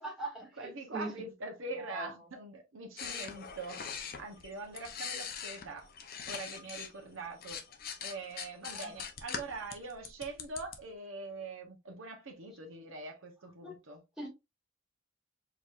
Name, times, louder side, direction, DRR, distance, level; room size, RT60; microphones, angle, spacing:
voice 1, 0.0-1.1 1.8-2.1 8.7-8.9 13.6-13.8 14.2-14.3, right 2 dB, 5° right, 1.9 m, -41 dB
voice 2, 0.6-3.8 4.2-5.9 6.3-7.6 8.0-14.0, right 3 dB, 75° right, 0.9 m, -43 dB
sound 1, 3.0-6.9 7.2-10.8, left 7 dB, 45° left, 0.6 m, -42 dB
4.7 x 3.0 x 2.4 m
head